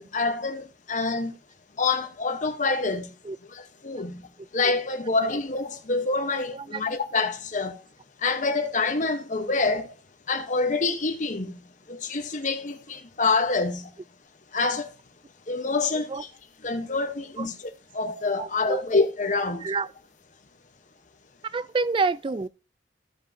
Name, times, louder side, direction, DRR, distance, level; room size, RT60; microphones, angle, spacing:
voice 1, 0.0-1.3 1.8-3.1 3.5-4.3 4.5-7.8 8.2-9.9 10.3-11.6 11.9-13.9 14.5-14.9 15.5-16.3 16.6-17.5 17.9-19.7, left 3 dB, 40° left, 0.9 m, -26 dB
voice 2, 18.4-18.8 19.6-19.9 21.4-22.5, right 4 dB, 25° right, 0.3 m, -28 dB
15.0 x 5.3 x 2.7 m
head